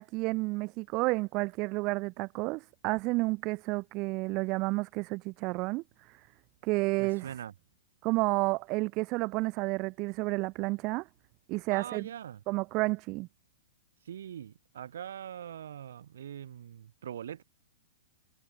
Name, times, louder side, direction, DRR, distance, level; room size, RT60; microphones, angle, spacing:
voice 1, 0.0-5.8 6.6-7.3 8.0-11.1 11.5-12.1 12.5-13.3, right 24 dB, 35° right, 0.5 m, -31 dB
voice 2, 7.0-7.5 11.7-12.4 14.0-17.4, right 9 dB, 60° right, 0.9 m, -42 dB
figure-of-eight pair, 110°, 0 cm